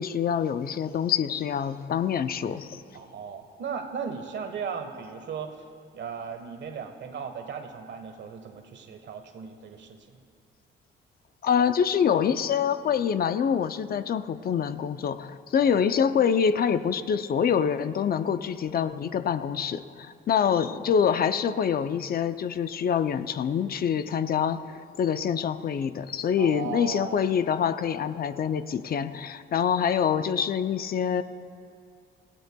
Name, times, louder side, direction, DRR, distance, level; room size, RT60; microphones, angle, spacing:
voice 1, 0.0-2.8 11.4-31.2, left 7 dB, 50° left, 11 dB, 0.5 m, -26 dB
voice 2, 2.9-5.5 5.9-10.2 15.6-15.9 26.4-27.3, right 6 dB, 65° right, 6 dB, 1.3 m, -37 dB
27.0 x 16.0 x 2.3 m, 2.4 s
cardioid pair, 90°, 20 cm